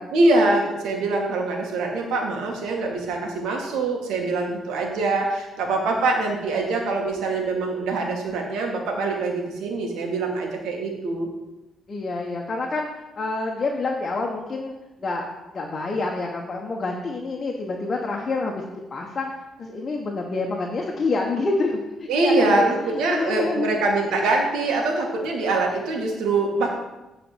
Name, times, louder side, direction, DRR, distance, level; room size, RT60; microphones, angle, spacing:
voice 1, 0.1-11.3 22.1-26.7, right 2 dB, 85° right, 1 dB, 2.1 m, -24 dB
voice 2, 11.9-19.3 19.6-22.7 23.1-23.8, left 3 dB, 40° left, 0 dB, 1.3 m, -27 dB
9.4 x 4.3 x 7.5 m, 1.0 s
cardioid pair, 90°, 0 cm